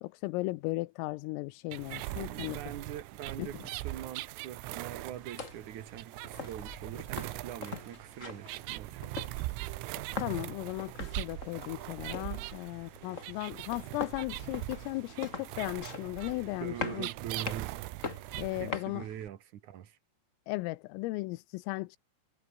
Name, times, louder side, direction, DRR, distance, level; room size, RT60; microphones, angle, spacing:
voice 1, 0.0-2.6 3.4-3.6 10.2-17.1 18.4-19.1 20.5-22.0, left 21 dB, 85° left, 3.4 m, -36 dB
sound 1, 1.7-18.7, right 18 dB, 80° right, 3.5 m, -41 dB
voice 2, 2.1-9.0 16.5-17.7 18.6-20.0, right 10 dB, 65° right, 1.9 m, -43 dB
sound 2, 5.1-19.3, left 4 dB, 60° left, 0.8 m, -44 dB
omnidirectional pair, 5.9 m